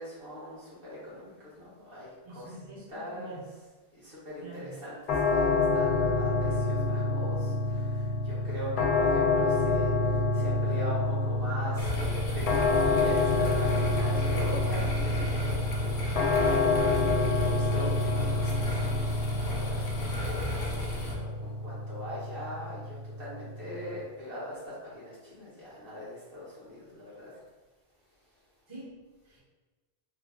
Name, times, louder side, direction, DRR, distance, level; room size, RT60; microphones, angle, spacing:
voice 1, 0.0-2.6 2.9-3.4 3.9-27.3, left 1 dB, 60° right, -9 dB, 1.6 m, -41 dB
voice 2, 2.2-3.5 4.4-4.8 28.7-29.4, right 1 dB, 30° right, -8 dB, 0.9 m, -46 dB
sound 1, 5.1-24.0, left 2 dB, 90° left, 0.8 m, -28 dB
sound 2, 11.8-21.1, left 1 dB, 60° left, 0.8 m, -35 dB
3.3 x 2.2 x 3.7 m, 1.3 s
omnidirectional pair, 1.1 m